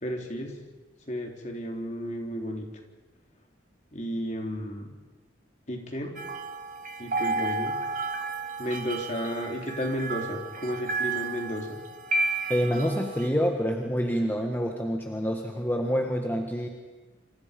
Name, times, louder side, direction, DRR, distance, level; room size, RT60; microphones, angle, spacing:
voice 1, 0.0-0.6 1.1-2.7 3.9-4.9 5.7-6.2 7.0-7.8 8.6-11.8, equal, 40° left, 2 dB, 3.7 m, -33 dB
sound 1, 6.2-13.3, right 3 dB, 45° right, 2.2 m, -32 dB
voice 2, 12.5-16.7, equal, 10° left, 2 dB, 1.5 m, -27 dB
27.5 x 27.0 x 5.3 m, 1.3 s
head